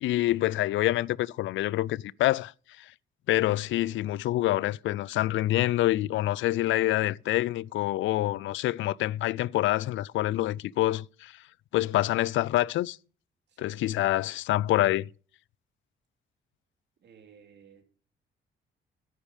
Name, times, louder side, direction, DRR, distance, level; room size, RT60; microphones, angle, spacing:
voice 1, 0.0-2.5 3.3-11.3 11.7-13.0 13.6-15.1, left 15 dB, 75° left, 0.4 m, -26 dB
voice 2, 17.0-17.8, right 7 dB, 60° right, 2.9 m, -54 dB
10.5 x 8.4 x 5.1 m
cardioid pair, 90°, 20 cm